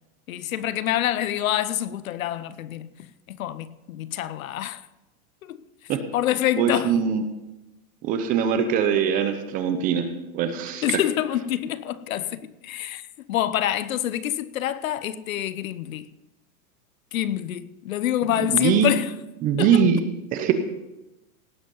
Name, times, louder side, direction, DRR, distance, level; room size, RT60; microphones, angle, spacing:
voice 1, 0.3-4.8 5.4-5.6 6.1-7.0 10.8-16.0 17.1-19.1 19.6-19.8, left 12 dB, 70° left, 0.9 m, -26 dB
voice 2, 6.6-7.2 8.0-11.0 18.4-18.9 19.4-20.0 20.3-20.5, right 7 dB, 20° right, 0.7 m, -22 dB
18.0 x 8.0 x 5.5 m
supercardioid pair, 160°, 43 cm